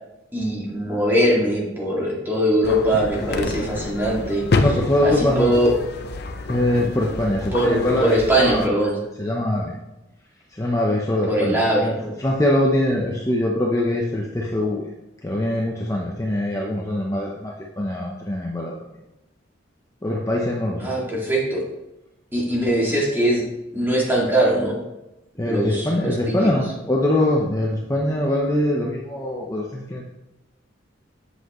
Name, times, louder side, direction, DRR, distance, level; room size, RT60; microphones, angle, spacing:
voice 1, 0.3-4.5 5.0-5.7 7.5-9.0 11.3-12.1 20.8-21.6 22.3-23.4 23.7-24.8 25.4-26.5, right 1 dB, 10° right, -4 dB, 2.1 m, -21 dB
sound 1, 2.6-8.7, left 3 dB, 55° left, 0.6 m, -28 dB
voice 2, 4.6-5.5 6.5-8.8 9.2-9.8 10.5-11.9 12.2-14.9 15.2-18.8 20.0-20.9 25.4-30.0, left 1 dB, 15° left, -2 dB, 0.7 m, -23 dB
8.1 x 7.6 x 3.0 m, 0.96 s
head